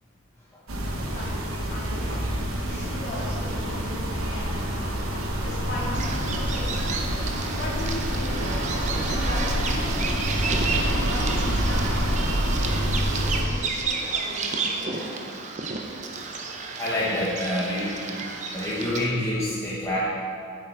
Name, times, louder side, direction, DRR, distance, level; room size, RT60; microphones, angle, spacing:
sound 1, 0.7-13.4, equal, 80° right, 1.0 m, -27 dB
voice 1, 1.0-6.7 7.4-8.5 9.1-9.9 10.9-12.9 13.3-15.4, left 1 dB, 50° left, -6 dB, 2.0 m, -38 dB
Bird vocalization bird call bird song, 5.9-19.0, right 4 dB, 35° right, 0.6 m, -32 dB
voice 2, 16.8-18.0 18.5-20.0, left 1 dB, 15° left, -8 dB, 1.0 m, -27 dB
7.3 x 6.7 x 4.6 m, 2.3 s
head